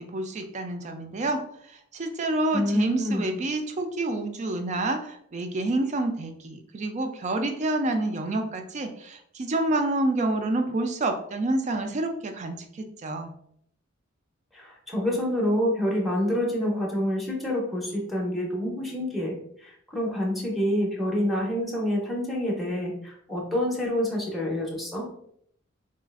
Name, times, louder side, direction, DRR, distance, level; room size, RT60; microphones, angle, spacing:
voice 1, 0.0-1.4 1.9-13.3, right 2 dB, 35° right, 6 dB, 0.4 m, -28 dB
voice 2, 2.5-3.3 14.5-25.1, left 1 dB, ahead, -4 dB, 0.7 m, -27 dB
3.9 x 2.4 x 2.3 m, 0.68 s
head